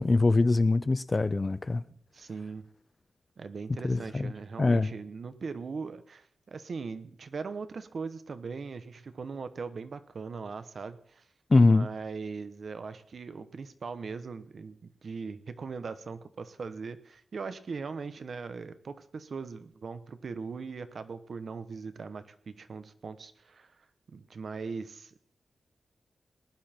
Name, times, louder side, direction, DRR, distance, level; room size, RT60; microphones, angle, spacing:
voice 1, 0.0-1.8 3.8-4.3 4.6-4.9 11.5-11.9, left 3 dB, 25° left, 0.4 m, -23 dB
voice 2, 2.1-2.7 3.4-11.2 11.7-25.2, right 5 dB, 50° right, 1.0 m, -40 dB
19.0 x 11.0 x 4.4 m
wide cardioid pair, 160°, 0 cm